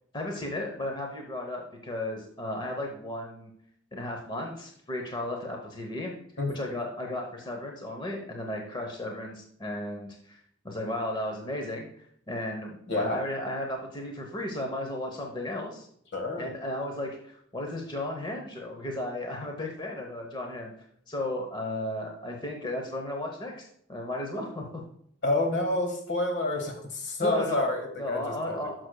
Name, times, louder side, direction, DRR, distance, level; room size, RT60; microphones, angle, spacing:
voice 1, 0.1-3.5 3.9-6.1 6.5-10.4 10.6-15.9 16.4-20.7 21.1-23.6 23.9-24.8 27.2-28.7, left 1 dB, 25° left, 1 dB, 0.9 m, -34 dB
voice 2, 12.9-13.2 16.1-16.5 25.2-28.6, left 2 dB, 60° left, 4 dB, 1.6 m, -28 dB
11.5 x 6.1 x 2.3 m, 0.68 s
head